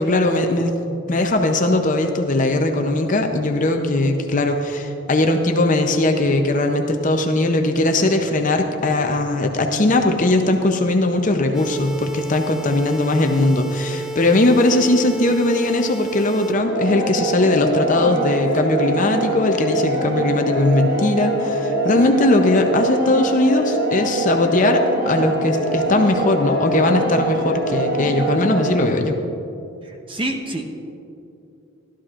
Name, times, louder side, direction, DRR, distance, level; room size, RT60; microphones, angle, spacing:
voice 1, 0.0-29.2, left 2 dB, 35° left, 4 dB, 0.6 m, -19 dB
sound 1, 11.5-16.5, right 3 dB, 5° right, 0.5 m, -31 dB
sound 2, 16.6-28.7, right 1 dB, 75° right, 2.5 m, -23 dB
voice 2, 29.8-30.6, right 1 dB, 25° right, 3 dB, 0.8 m, -27 dB
15.0 x 12.5 x 2.5 m, 2.7 s
head